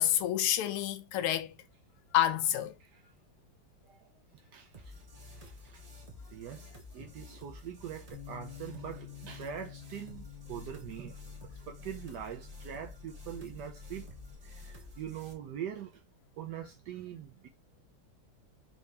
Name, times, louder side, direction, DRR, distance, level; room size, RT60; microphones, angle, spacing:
voice 1, 0.0-1.5 2.1-2.7, left 11 dB, 85° left, 1.5 m, -28 dB
voice 2, 4.5-4.9 5.3-5.8 6.3-11.1 11.5-14.1 14.4-16.0 16.4-17.5, right 9 dB, 75° right, 1.0 m, -43 dB
sound 1, 4.7-15.3, left 2 dB, 60° right, 0.4 m, -50 dB
Bass guitar, 8.1-14.4, left 12 dB, 40° left, 0.8 m, -51 dB
4.5 x 3.4 x 2.7 m
omnidirectional pair, 2.3 m